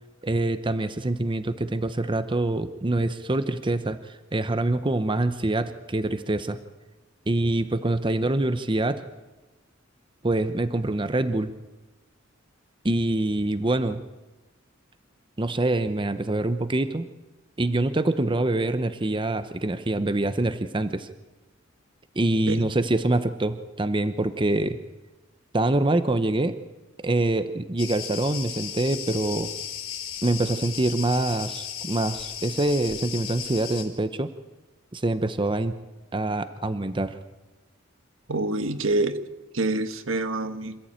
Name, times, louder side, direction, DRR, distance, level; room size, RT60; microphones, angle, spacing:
voice 1, 0.2-6.6 7.3-9.1 10.2-11.5 12.8-14.0 15.4-17.1 17.6-21.1 22.1-24.8 25.5-26.6 27.0-29.5 30.2-34.3 34.9-35.7 36.1-37.2, right 2 dB, 25° right, 10 dB, 0.8 m, -25 dB
Cricket, 27.8-33.8, left 9 dB, 85° left, 4.1 m, -35 dB
voice 2, 38.3-39.2 39.5-40.8, right 2 dB, 75° right, 9 dB, 1.4 m, -26 dB
26.5 x 14.5 x 8.8 m, 1.1 s
head